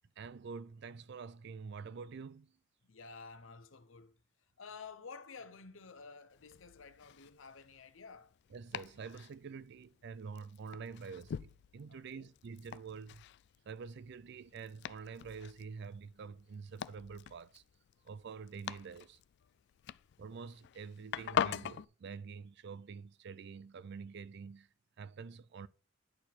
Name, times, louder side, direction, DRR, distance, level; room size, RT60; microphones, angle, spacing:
voice 1, 0.2-2.5 8.5-13.2 13.7-17.6 18.0-19.2 20.2-24.7 25.0-25.7, right 5 dB, 60° right, 0.4 m, -47 dB
voice 2, 2.8-4.2 4.6-8.3 11.9-12.3, left 4 dB, 85° left, 0.8 m, -52 dB
Domestic sounds home sounds, 6.3-21.8, left 9 dB, 60° left, 0.3 m, -44 dB
9.7 x 4.3 x 4.2 m
head